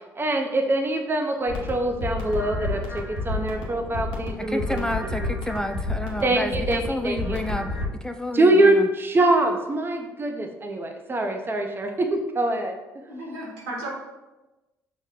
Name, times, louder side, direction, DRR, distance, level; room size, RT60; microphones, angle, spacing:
voice 1, 0.2-5.4 6.2-7.4 8.3-12.7, right 1 dB, 25° right, 4 dB, 0.6 m, -24 dB
sound 1, 1.5-7.9, left 2 dB, 70° left, 0.9 m, -30 dB
voice 2, 4.4-8.9, left 1 dB, 5° left, 7 dB, 0.3 m, -30 dB
voice 3, 13.1-13.9, right 1 dB, 80° right, -4 dB, 1.3 m, -34 dB
5.6 x 2.1 x 3.6 m, 1.0 s
hypercardioid pair, 50°, 9 cm